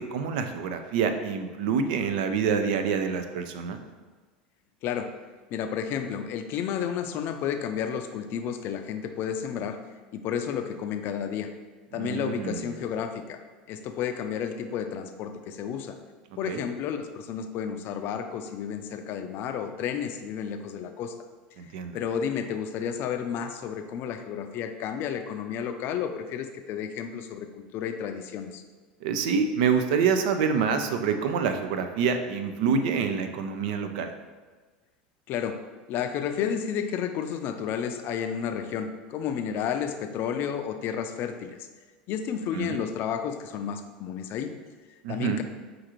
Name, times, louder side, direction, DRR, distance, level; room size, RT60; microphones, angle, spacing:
voice 1, 0.0-3.8 12.0-12.6 16.5-16.6 21.6-22.0 29.0-34.1 42.5-42.8 45.0-45.4, right 6 dB, 70° right, 7 dB, 0.4 m, -27 dB
voice 2, 4.8-5.1 5.5-9.8 10.1-11.5 11.9-13.4 13.7-16.0 16.4-21.2 21.6-28.6 35.3-35.6 35.9-41.7 42.1-44.5 45.1-45.4, left 8 dB, 50° left, 7 dB, 0.4 m, -31 dB
6.0 x 2.5 x 2.9 m, 1.3 s
hypercardioid pair, 95°, 5 cm